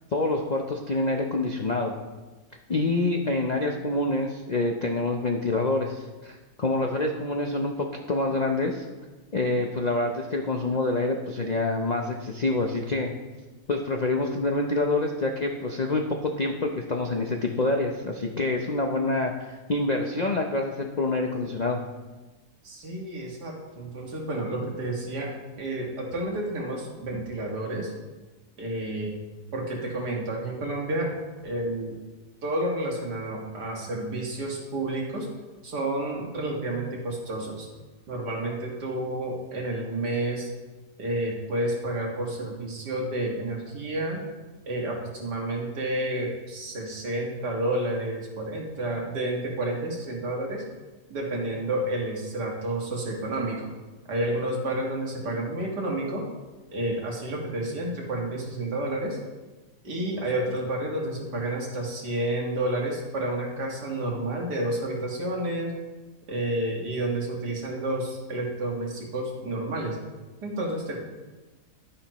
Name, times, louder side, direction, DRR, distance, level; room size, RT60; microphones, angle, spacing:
voice 1, 0.1-1.9 2.7-8.8 9.3-13.1 13.7-21.8, left 2 dB, 55° left, 2 dB, 0.4 m, -26 dB
voice 2, 22.6-27.9 28.6-29.1 29.5-31.1 31.4-32.0 32.4-35.3 35.6-37.7 38.1-40.5 41.0-44.2 44.7-50.6 51.1-53.7 54.1-56.2 56.7-59.2 59.8-65.8 66.3-70.0 70.4-71.0, right 1 dB, 75° right, -1 dB, 2.3 m, -30 dB
11.0 x 9.7 x 3.0 m, 1.2 s
omnidirectional pair, 1.8 m